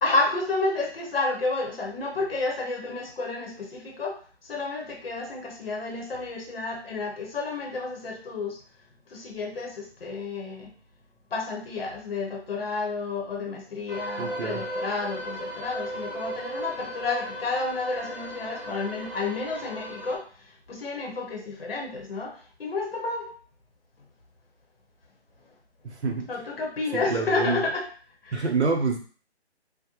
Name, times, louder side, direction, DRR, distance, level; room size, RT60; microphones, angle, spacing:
voice 1, 0.0-8.6 9.1-10.7 11.3-23.3 26.3-27.9 28.2-28.5, left 3 dB, 60° left, 0 dB, 0.8 m, -30 dB
sound 1, 13.9-20.2, right 1 dB, 15° left, 0.8 m, -36 dB
voice 2, 14.2-14.6 25.8-26.2 26.9-27.6 28.3-29.0, right 4 dB, 80° right, 3 dB, 0.8 m, -27 dB
2.4 x 2.1 x 2.9 m, 0.40 s
hypercardioid pair, 180°, 33 cm